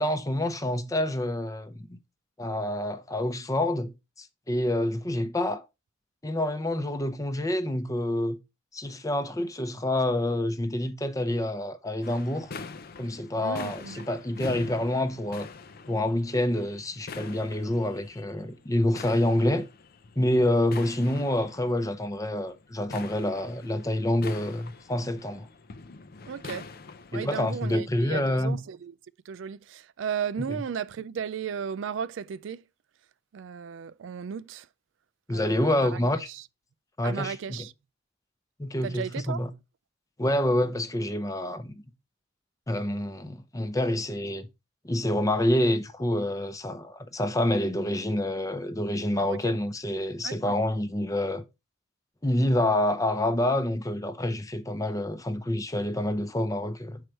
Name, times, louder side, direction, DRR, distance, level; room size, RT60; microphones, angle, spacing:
voice 1, 0.0-2.0 2.4-5.6 6.2-8.4 8.7-12.5 13.0-15.5 15.9-19.7 20.2-25.5 27.1-28.6 30.4-30.5 35.3-36.3 37.0-37.7 38.6-39.5 40.2-41.8 42.7-44.5 44.8-51.4 52.2-57.0, left 1 dB, 20° left, 0.7 m, -27 dB
sound 1, 12.0-27.8, left 4 dB, 55° left, 0.6 m, -44 dB
voice 2, 13.4-14.1 26.3-26.7 27.1-28.9 29.3-32.6 33.3-34.7 35.3-36.0 36.3-36.4 37.0-37.7 38.8-39.4 49.2-49.6 50.2-50.6, right 7 dB, 85° right, 0.4 m, -35 dB
6.4 x 4.7 x 4.4 m
head